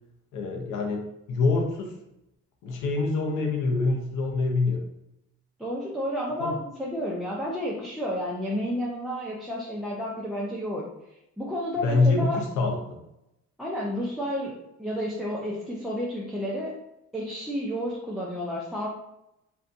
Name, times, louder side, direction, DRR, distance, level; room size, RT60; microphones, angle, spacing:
voice 1, 0.3-1.0 1.3-1.9 2.6-4.8 6.4-6.5 11.8-13.0, left 3 dB, 85° left, 2 dB, 0.6 m, -25 dB
voice 2, 5.6-10.8 11.4-12.4 13.6-16.8 17.1-18.9, equal, ahead, -5 dB, 0.4 m, -31 dB
2.6 x 2.2 x 2.5 m, 0.85 s
cardioid pair, 90°, 30 cm